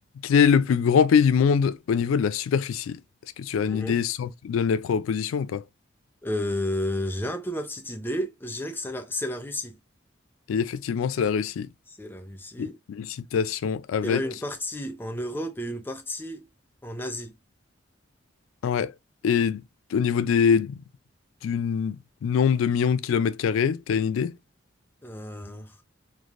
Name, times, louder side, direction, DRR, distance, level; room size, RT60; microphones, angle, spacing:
voice 1, 0.2-3.0 3.4-5.6 10.5-11.7 12.6-12.7 13.0-14.2 18.6-18.9 19.2-19.6 19.9-20.8 21.4-24.3, left 7 dB, 90° left, 0.3 m, -23 dB
voice 2, 3.7-4.0 6.2-9.8 11.9-12.8 14.0-16.5 16.8-17.3 25.0-25.7, left 1 dB, 10° left, 0.4 m, -32 dB
3.2 x 2.4 x 2.4 m
head